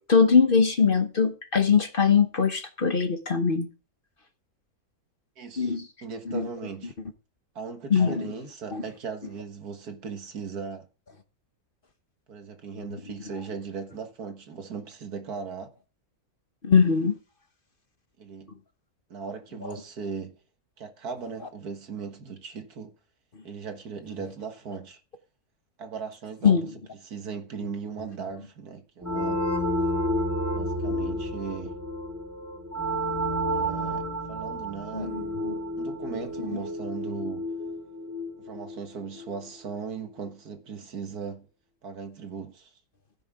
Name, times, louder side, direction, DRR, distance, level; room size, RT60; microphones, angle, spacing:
voice 1, 0.0-3.7 5.6-5.8 6.3-6.5 7.9-8.3 8.7-8.8 16.6-17.1 26.4-26.6 34.9-35.5, left 6 dB, 40° left, 1.2 m, -22 dB
voice 2, 5.4-6.9 7.6-10.9 12.3-15.7 18.2-18.5 19.1-20.4 20.8-22.9 23.4-25.0 25.8-26.7 27.0-29.4 30.5-31.8 33.5-35.1 35.8-37.5 38.4-41.5 41.8-42.7, right 6 dB, 80° right, 2.1 m, -38 dB
sound 1, 29.0-39.5, equal, 10° right, 4.8 m, -30 dB
15.5 x 9.9 x 3.7 m
omnidirectional pair, 1.6 m